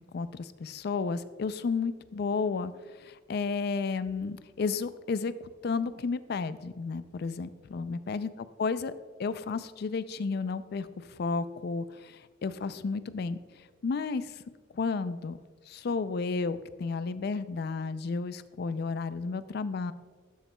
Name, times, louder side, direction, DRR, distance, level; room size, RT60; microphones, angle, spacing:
voice 1, 0.1-2.7 3.0-8.3 8.6-8.9 9.2-13.4 13.8-14.4 14.7-15.4 15.7-19.9, left 4 dB, 55° left, 14 dB, 0.4 m, -32 dB
12.0 x 7.1 x 2.2 m, 1.5 s
head